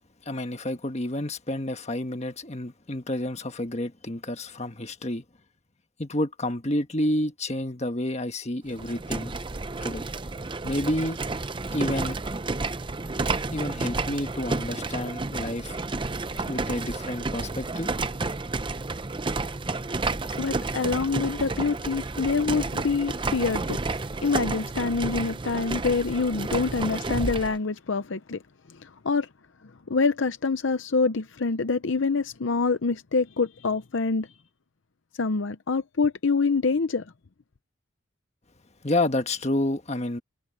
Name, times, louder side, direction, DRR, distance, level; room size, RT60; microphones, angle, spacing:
voice 1, 0.2-5.2 6.0-9.3 9.8-10.0 10.6-11.2 11.7-12.2 13.5-15.8 16.5-17.9 38.8-40.2, left 1 dB, 30° left, 1.4 m, -29 dB
sound 1, 8.7-27.6, right 3 dB, 25° right, 0.6 m, -31 dB
voice 2, 20.4-23.8 24.2-28.4 28.8-29.3 29.9-34.3 35.2-37.0, left 4 dB, 60° left, 0.7 m, -26 dB
head